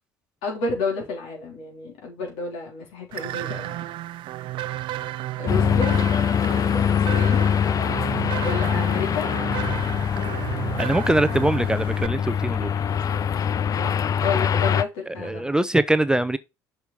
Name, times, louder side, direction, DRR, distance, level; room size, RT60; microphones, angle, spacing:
voice 1, 0.4-3.8 5.4-6.0 6.7-7.5 8.4-9.3 11.3-11.4 12.8-15.7, left 4 dB, 70° left, 3.3 m, -31 dB
sound 1, 3.1-12.1, right 14 dB, 60° right, 0.4 m, -33 dB
sound 2, 5.5-14.8, left 8 dB, 40° left, 0.4 m, -23 dB
voice 2, 10.8-12.7 15.2-16.4, right 1 dB, 10° right, 0.6 m, -22 dB
6.2 x 5.6 x 4.0 m
hypercardioid pair, 60°, 10 cm